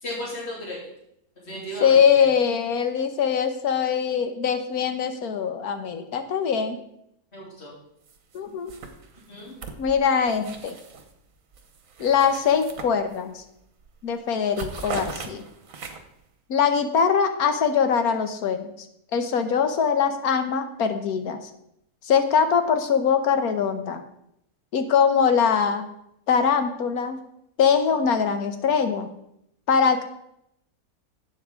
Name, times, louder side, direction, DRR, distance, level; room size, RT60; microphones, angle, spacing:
voice 1, 0.0-0.8 1.5-2.2 7.3-7.7 9.3-9.6, equal, 45° left, -5 dB, 3.4 m, -35 dB
voice 2, 1.8-6.8 8.3-8.7 9.8-10.8 12.0-13.4 14.0-15.4 16.5-18.7 19.1-21.4 22.0-24.0 24.7-25.9 26.3-27.2 27.6-29.1 29.7-30.0, left 6 dB, 75° left, 8 dB, 1.5 m, -22 dB
sound 1, 8.1-8.4 8.7-11.1 11.5-13.4 13.8-14.0 14.3-16.2, right 5 dB, 65° right, 1.4 m, -39 dB
12.0 x 8.4 x 3.6 m, 0.77 s
omnidirectional pair, 1.6 m